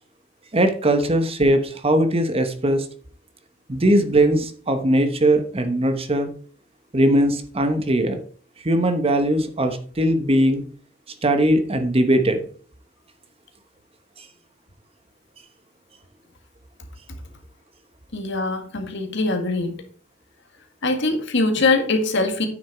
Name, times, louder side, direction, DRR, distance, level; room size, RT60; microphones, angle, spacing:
voice 1, 0.5-2.9 3.7-6.3 6.9-8.2 8.6-10.6 11.2-12.4 14.2-14.3, right 1 dB, 30° right, 8 dB, 1.0 m, -20 dB
voice 2, 18.1-19.8 20.8-22.5, left 3 dB, 60° left, 5 dB, 1.8 m, -22 dB
9.2 x 6.3 x 4.5 m, 0.43 s
head